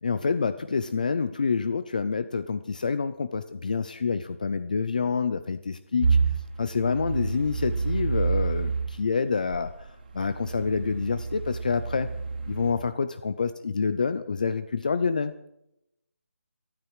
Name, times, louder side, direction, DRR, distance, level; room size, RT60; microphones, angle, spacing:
voice 1, 0.0-6.2 6.6-12.1 12.5-15.5, left 5 dB, 30° left, 12 dB, 0.5 m, -27 dB
sound 1, 6.0-8.9 9.5-12.7, right 5 dB, 35° right, 2.8 m, -28 dB
27.0 x 9.3 x 4.8 m, 0.85 s
hypercardioid pair, 175°, 8 cm